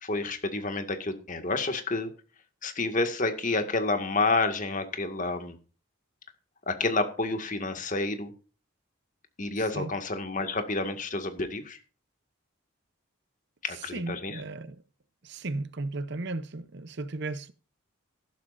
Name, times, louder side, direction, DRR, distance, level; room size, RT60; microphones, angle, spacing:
voice 1, 0.0-2.1 2.6-5.6 6.7-8.3 9.4-11.8 13.6-14.4, left 3 dB, 40° left, 2.0 m, -29 dB
voice 2, 9.5-9.9 13.7-14.8 15.2-17.5, right 2 dB, 55° right, 0.8 m, -35 dB
14.5 x 12.5 x 2.6 m
head